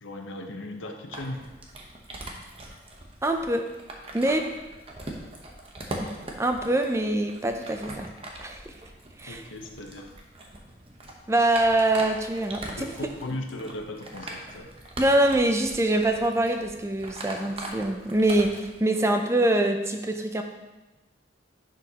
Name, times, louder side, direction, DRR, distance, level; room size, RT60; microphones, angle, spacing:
voice 1, 0.0-1.5 9.3-10.1 12.7-14.7, left 1 dB, 90° left, 4 dB, 0.8 m, -37 dB
sound 1, 1.1-18.8, right 1 dB, 30° right, 0.8 m, -41 dB
voice 2, 3.2-3.7 4.1-4.5 6.0-8.1 8.4-8.6 9.2-9.4 11.3-12.9 15.0-20.4, right 1 dB, 15° right, 5 dB, 0.4 m, -24 dB
10.0 x 5.1 x 2.9 m, 1.1 s
head